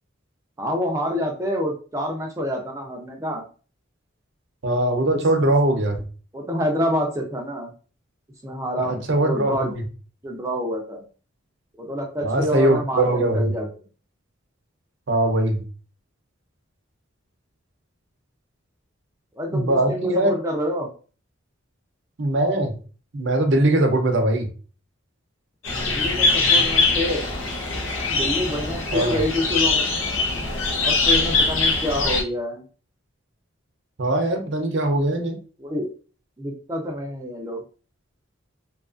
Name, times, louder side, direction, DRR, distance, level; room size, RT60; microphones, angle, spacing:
voice 1, 0.6-3.4 5.0-5.2 6.3-7.7 8.4-9.7 10.2-11.0 11.8-13.7 19.4-20.9 25.8-27.3 28.0-29.9 30.8-32.6 35.6-35.9 36.4-37.6, equal, 15° right, 1 dB, 0.4 m, -27 dB
voice 2, 4.6-6.0 8.8-9.8 12.2-13.5 15.1-15.6 19.5-20.3 22.2-22.7 23.1-24.5 28.9-29.2 34.0-35.4, right 1 dB, 60° right, 4 dB, 0.6 m, -21 dB
sound 1, 25.6-32.2, left 3 dB, 70° left, 0.7 m, -22 dB
2.8 x 2.4 x 2.4 m, 0.37 s
head